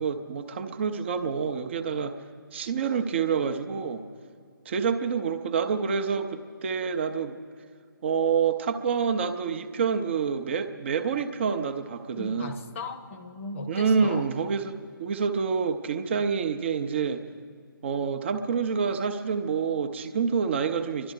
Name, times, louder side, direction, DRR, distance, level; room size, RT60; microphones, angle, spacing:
voice 1, 0.0-2.2 2.5-4.0 4.7-7.4 8.0-12.5 13.7-17.2 17.8-21.1, right 6 dB, 30° right, 7 dB, 0.6 m, -27 dB
voice 2, 12.2-14.3, left 3 dB, 35° left, 8 dB, 0.9 m, -37 dB
29.5 x 12.0 x 3.8 m, 2.1 s
figure-of-eight pair, 145°, 12 cm